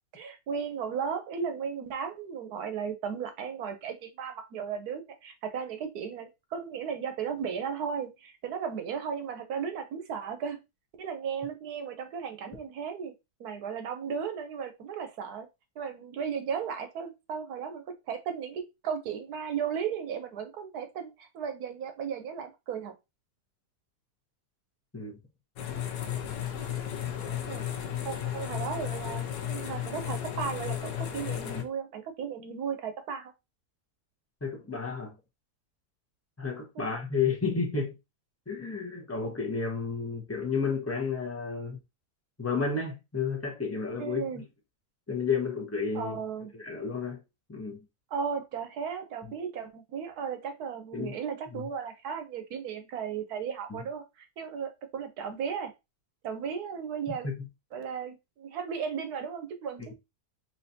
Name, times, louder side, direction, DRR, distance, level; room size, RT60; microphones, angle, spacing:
voice 1, 0.1-10.6 11.0-13.1 13.4-15.5 15.8-22.9 27.5-33.3 36.7-36.9 44.0-44.4 45.9-46.5 48.1-55.7 56.2-57.3 57.7-59.9, right 7 dB, 70° right, 1.2 m, -35 dB
sound 1, 25.6-31.6, left 10 dB, 75° left, 1.3 m, -34 dB
voice 2, 34.4-35.1 36.4-38.0 38.5-41.8 42.4-44.4 45.1-46.2 46.5-47.2 47.5-47.8 49.2-49.3 50.9-51.2 51.5-51.7 53.7-53.8 57.2-57.4, left 5 dB, 10° left, 0.8 m, -31 dB
4.3 x 3.2 x 2.7 m
omnidirectional pair, 1.8 m